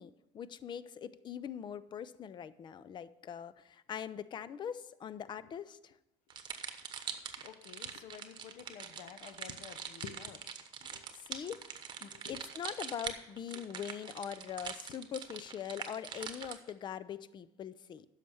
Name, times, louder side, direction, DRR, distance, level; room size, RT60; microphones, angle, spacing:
voice 1, 0.0-5.9 11.2-11.7 12.0-18.1, left 8 dB, 40° left, 0.5 m, -42 dB
sound 1, 6.3-16.7, right 7 dB, 40° right, 1.1 m, -43 dB
voice 2, 7.4-10.5 10.8-11.0 12.0-12.4 13.5-13.6 14.9-15.0, left 8 dB, 70° left, 0.9 m, -50 dB
10.0 x 6.5 x 7.1 m
cardioid pair, 115°, 12 cm